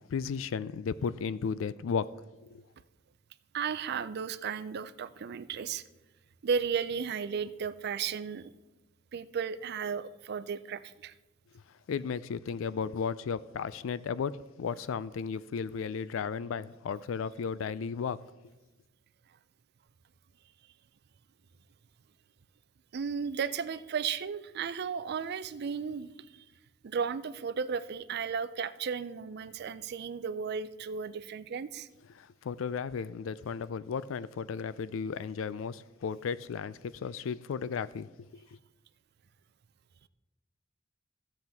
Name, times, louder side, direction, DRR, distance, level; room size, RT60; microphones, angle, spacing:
voice 1, 0.1-2.1 2.4-2.6 11.9-18.2 32.2-38.1, left 6 dB, 75° left, 0.4 m, -34 dB
voice 2, 3.5-5.8 6.4-8.5 9.1-11.1 22.9-26.4 26.8-31.9, right 6 dB, 55° right, 0.4 m, -34 dB
14.5 x 7.7 x 3.5 m
head